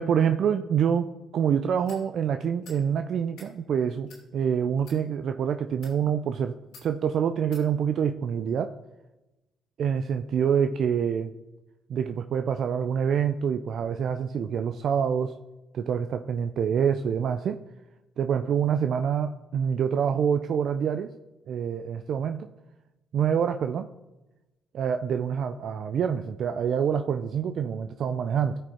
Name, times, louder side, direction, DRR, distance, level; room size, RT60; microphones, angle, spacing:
voice 1, 0.0-6.5 6.8-8.7 9.8-11.3 11.9-15.3 15.7-17.6 18.2-21.1 21.5-22.5 23.1-23.9 24.7-28.6, right 7 dB, 65° right, 8 dB, 0.5 m, -26 dB
sound 1, 1.9-2.0 2.6-2.8 3.2-3.5 4.1-4.2 4.8-5.0 5.7-6.0 6.7-6.9 7.5-7.7, left 4 dB, 90° left, 2.8 m, -49 dB
15.0 x 5.2 x 4.3 m, 1.0 s
cardioid pair, 90°, 0 cm